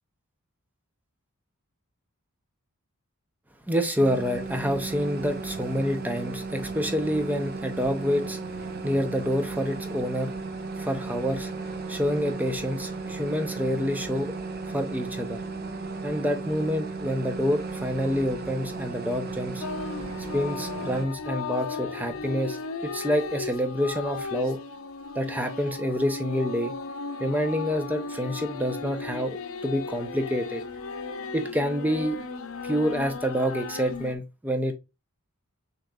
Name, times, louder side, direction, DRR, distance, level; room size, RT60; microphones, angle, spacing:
voice 1, 3.7-8.4 8.8-10.3 10.8-11.5 11.9-14.3 14.7-15.4 16.0-19.6 20.3-22.6 22.8-24.6 25.1-26.8 27.2-30.6 31.3-32.2 32.6-34.7, equal, 10° right, 0.5 m, -27 dB
sound 1, 4.0-21.1, right 3 dB, 45° right, 0.7 m, -35 dB
sound 2, 19.6-34.2, left 4 dB, 65° left, 0.6 m, -36 dB
6.2 x 3.0 x 2.3 m
head